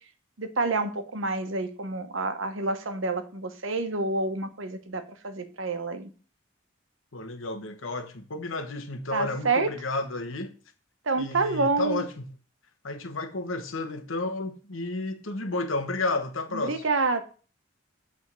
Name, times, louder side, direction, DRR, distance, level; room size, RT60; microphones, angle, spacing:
voice 1, 0.4-6.1 9.1-9.7 11.1-12.0 16.5-17.2, right 3 dB, 80° right, 1.1 m, -28 dB
voice 2, 7.1-10.5 11.2-12.3 12.8-16.8, left 2 dB, 85° left, 1.1 m, -32 dB
8.5 x 3.6 x 6.1 m
head